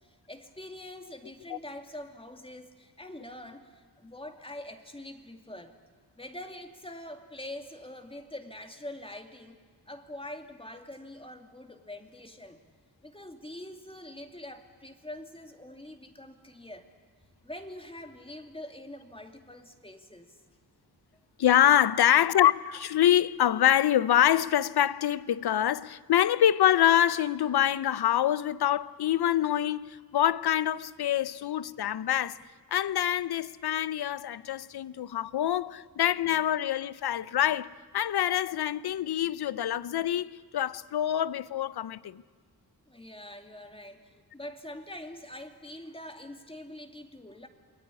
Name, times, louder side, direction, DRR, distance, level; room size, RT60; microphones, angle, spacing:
voice 1, 0.0-5.8 6.2-9.6 9.9-12.6 13.0-16.9 17.4-20.4 42.9-47.5, left 1 dB, 15° left, 2.5 m, -44 dB
voice 2, 21.4-32.4 32.7-37.7 37.9-42.2, left 11 dB, 70° left, 0.8 m, -25 dB
28.0 x 20.5 x 9.8 m
cardioid pair, 80°, 39 cm